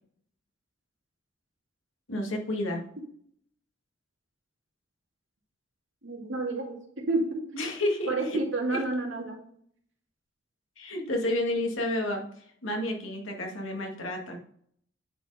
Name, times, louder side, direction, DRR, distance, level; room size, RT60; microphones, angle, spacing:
voice 1, 2.1-2.8 7.5-8.4 8.7-8.8 10.8-14.4, left 1 dB, 85° left, 1 dB, 2.1 m, -31 dB
voice 2, 6.0-7.5 8.1-9.4, right 2 dB, 70° right, 1 dB, 2.3 m, -30 dB
9.7 x 4.7 x 4.9 m, 0.63 s
head